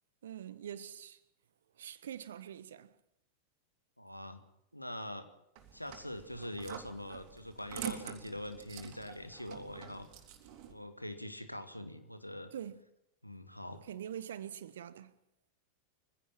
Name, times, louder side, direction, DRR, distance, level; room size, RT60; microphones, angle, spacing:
voice 1, 0.2-1.2 1.8-2.9 12.5-12.8 13.7-15.2, right 9 dB, 65° right, 1.2 m, -44 dB
voice 2, 4.0-4.4 4.7-5.3 5.7-10.1 10.7-12.5 13.2-13.8, left 1 dB, 90° left, 1.9 m, -43 dB
unlocking keyed padlock, 5.6-10.7, right 11 dB, 45° right, 3.2 m, -46 dB
24.0 x 16.0 x 7.5 m
figure-of-eight pair, 90°, 0 cm